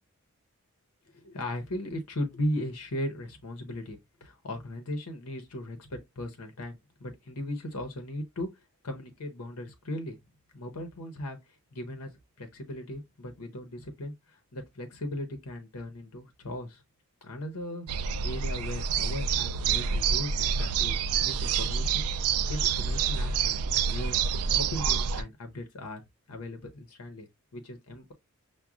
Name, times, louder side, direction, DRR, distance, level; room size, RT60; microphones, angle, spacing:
voice 1, 1.1-8.5 8.8-10.2 10.5-11.4 11.7-12.1 12.4-16.8 17.2-22.0 22.5-23.6 23.9-24.2 24.5-26.0 26.3-28.1, left 1 dB, 85° left, 0.8 m, -37 dB
sound 1, 17.9-25.2, right 6 dB, 85° right, 0.4 m, -27 dB
5.9 x 2.2 x 2.4 m
head